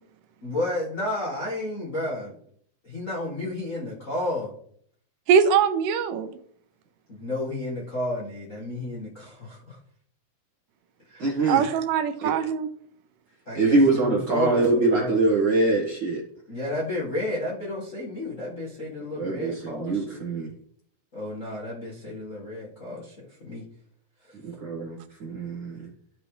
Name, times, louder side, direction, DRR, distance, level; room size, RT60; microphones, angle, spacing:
voice 1, 0.4-2.4 2.8-4.5 7.1-9.8 11.1-11.2 13.5-15.2 16.5-20.2 21.1-23.1 23.4-23.6, left 1 dB, 45° left, -6 dB, 1.0 m, -32 dB
voice 2, 5.3-6.3 11.5-12.7, right 7 dB, 80° right, 10 dB, 2.2 m, -22 dB
voice 3, 11.2-11.6 12.2-12.3 13.5-16.2 19.2-20.5 24.4-25.9, right 3 dB, 55° right, -4 dB, 1.2 m, -24 dB
12.0 x 4.9 x 3.2 m, 0.63 s
omnidirectional pair, 3.9 m